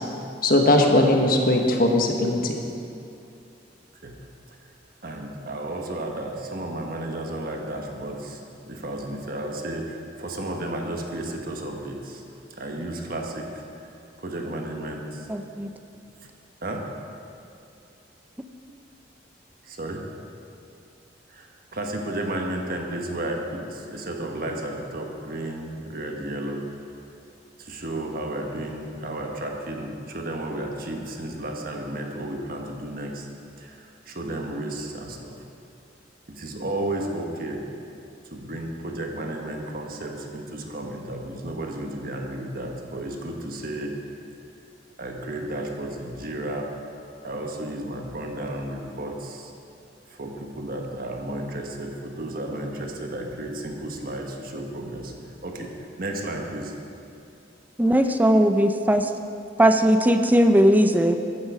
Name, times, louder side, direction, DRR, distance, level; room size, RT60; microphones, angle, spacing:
voice 1, 0.4-2.5, left 1 dB, 50° left, 2 dB, 1.4 m, -19 dB
voice 2, 5.0-8.4 8.7-12.2 12.6-13.5 13.8-13.9 14.2-15.3 16.6-16.9 19.6-20.1 21.3-26.7 27.6-33.3 33.6-35.4 36.3-37.6 38.3-44.0 45.0-46.7 47.2-49.5 50.1-55.7 56.0-56.7, right 1 dB, 50° right, 2 dB, 1.4 m, -33 dB
voice 3, 15.3-15.7 57.8-59.1 59.6-61.2, equal, 10° right, 7 dB, 0.5 m, -18 dB
14.0 x 10.5 x 5.0 m, 2.6 s
head